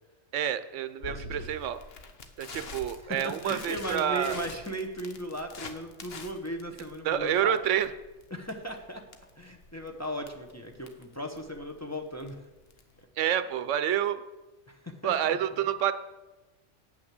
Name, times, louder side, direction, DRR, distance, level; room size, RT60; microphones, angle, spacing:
voice 1, 0.3-1.8 2.4-4.4 7.0-7.9 13.2-14.2 15.0-15.9, right 9 dB, 80° right, 13 dB, 1.0 m, -28 dB
Crackle, 1.0-13.0, left 3 dB, 55° left, 1.1 m, -46 dB
voice 2, 3.0-7.6 8.3-9.0 9.4-12.3 14.7-15.1, equal, 15° left, 2 dB, 0.8 m, -37 dB
8.5 x 6.1 x 7.6 m, 1.1 s
omnidirectional pair, 1.2 m